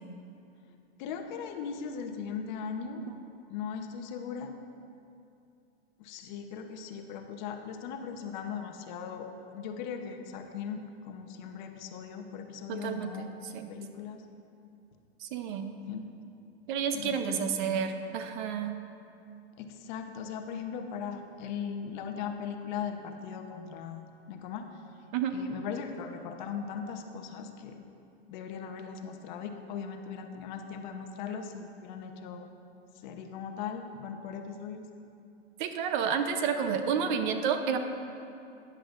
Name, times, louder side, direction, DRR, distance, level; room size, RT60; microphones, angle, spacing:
voice 1, 1.0-3.0 3.5-4.5 6.0-13.3 13.7-14.2 15.9-16.1 16.9-17.4 19.6-24.7 25.3-27.8 28.3-32.5 33.0-34.8, left 7 dB, 45° left, 5 dB, 0.9 m, -39 dB
voice 2, 12.7-13.7 15.2-15.8 16.7-18.8 25.1-25.4 35.6-37.8, right 7 dB, 50° right, 7 dB, 0.8 m, -30 dB
13.5 x 9.8 x 2.6 m, 2.6 s
hypercardioid pair, 130°, 32 cm